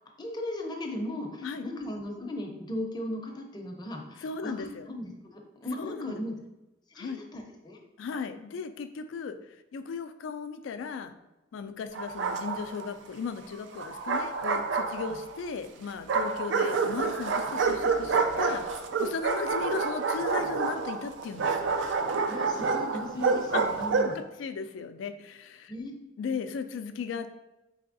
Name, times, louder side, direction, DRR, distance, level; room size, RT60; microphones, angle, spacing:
voice 1, 0.2-6.4 6.9-7.8 22.3-24.2 25.7-26.0, left 1 dB, 20° left, 1 dB, 0.5 m, -37 dB
voice 2, 4.2-4.9 5.8-6.2 7.0-7.2 8.0-9.4 9.7-11.1 11.5-18.6 19.0-21.7 23.5-23.6 24.0-25.7 26.2-27.3, left 5 dB, 75° left, 10 dB, 0.3 m, -36 dB
Bark, 11.9-12.9 13.8-15.4 16.1-24.2, right 4 dB, 70° right, 0.4 m, -28 dB
4.6 x 3.3 x 2.5 m, 0.98 s
head